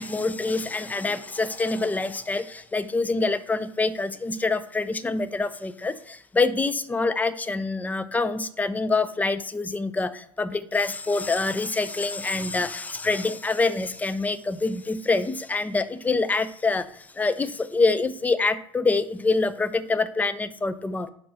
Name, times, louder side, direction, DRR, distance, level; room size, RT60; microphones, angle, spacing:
voice 1, 0.0-21.1, left 3 dB, 10° left, 13 dB, 0.4 m, -26 dB
5.4 x 4.2 x 5.4 m, 0.67 s
figure-of-eight pair, 75°, 17 cm